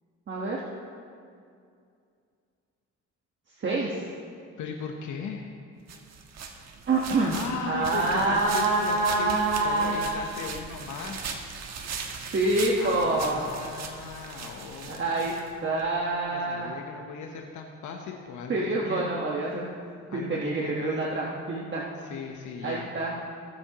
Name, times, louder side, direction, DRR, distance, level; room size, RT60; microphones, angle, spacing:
voice 1, 0.3-0.6 3.6-4.0 6.9-7.4 7.7-10.4 12.3-13.4 14.9-15.4 15.6-16.7 18.5-19.8 20.1-21.8 22.6-23.1, right 2 dB, 40° right, -4 dB, 1.4 m, -26 dB
voice 2, 4.6-5.5 7.2-11.3 12.8-15.8 16.3-19.1 20.1-21.0 22.0-22.9, left 5 dB, 75° left, 2 dB, 1.0 m, -38 dB
sound 1, 5.9-15.9, right 5 dB, 60° right, 1.3 m, -39 dB
21.0 x 7.3 x 3.0 m, 2.3 s
cardioid pair, 90°, 30 cm